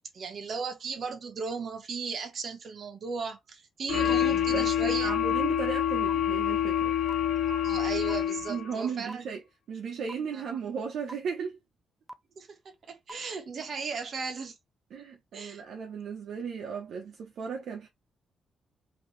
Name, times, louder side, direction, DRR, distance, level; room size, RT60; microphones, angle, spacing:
voice 1, 0.1-5.1 7.5-9.2 10.3-10.6 12.3-14.6 15.0-15.1 15.3-15.6, right 5 dB, 45° right, 1.5 m, -36 dB
sound 1, 3.9-8.7, left 10 dB, 65° left, 0.6 m, -27 dB
sound 2, 4.1-4.2 5.1-5.2 6.1-6.2 7.1-7.2 8.1-8.2 9.1-9.2 10.1-10.2 11.1-11.2 12.1-12.2 13.1-13.2, right 1 dB, 10° right, 0.5 m, -40 dB
voice 2, 4.3-6.9 8.5-9.4 9.7-11.5 14.9-17.9, right 6 dB, 60° right, 1.0 m, -35 dB
5.1 x 3.0 x 3.3 m
cardioid pair, 155°, 0 cm